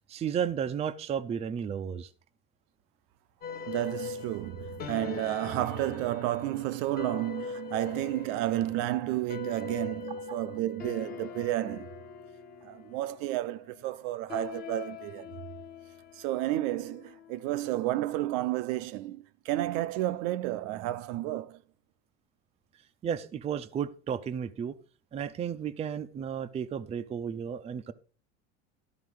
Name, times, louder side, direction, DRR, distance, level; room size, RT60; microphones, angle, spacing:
voice 1, 0.1-2.1 10.3-10.4 23.0-24.8 25.1-27.9, right 8 dB, 20° right, 0.5 m, -33 dB
sound 1, 3.4-17.9, left 5 dB, 30° left, 1.1 m, -42 dB
voice 2, 3.7-11.9 12.6-15.3 16.1-21.6, right 15 dB, 60° right, 0.7 m, -31 dB
12.5 x 5.0 x 4.7 m
supercardioid pair, 140°, 33 cm